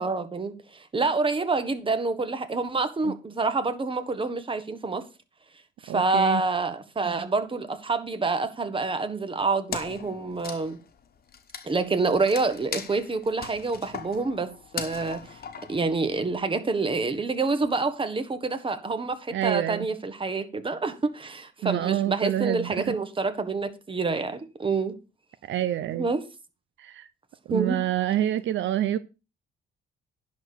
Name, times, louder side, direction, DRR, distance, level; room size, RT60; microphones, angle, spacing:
voice 1, 0.0-5.0 5.8-10.8 11.6-15.4 15.7-25.0 25.9-26.2 27.5-27.8, right 3 dB, 25° right, 1.5 m, -27 dB
voice 2, 5.9-6.4 19.3-19.9 21.6-22.9 25.4-26.1 26.8-27.1 27.5-29.0, right 12 dB, 70° right, 0.6 m, -27 dB
Wood, 9.7-16.4, left 7 dB, 50° left, 1.3 m, -39 dB
10.5 x 4.2 x 6.8 m
cardioid pair, 90°, 20 cm